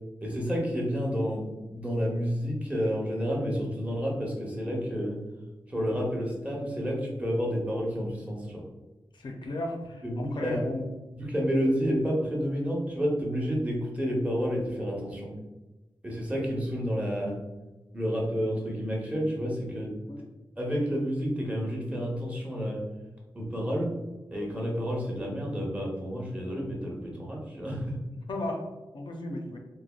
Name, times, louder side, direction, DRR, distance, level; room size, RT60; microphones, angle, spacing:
voice 1, 0.2-5.2 5.7-8.6 10.0-10.7 11.1-15.3 16.0-17.4 17.9-20.0 20.6-22.8 23.3-23.9 24.3-28.0, equal, 15° right, -2 dB, 0.7 m, -30 dB
voice 2, 9.1-10.8 15.3-15.5 20.1-20.2 28.3-28.6 28.9-29.6, left 2 dB, 60° left, 2 dB, 0.4 m, -35 dB
3.2 x 2.1 x 2.2 m, 1.1 s
wide cardioid pair, 90°, 9 cm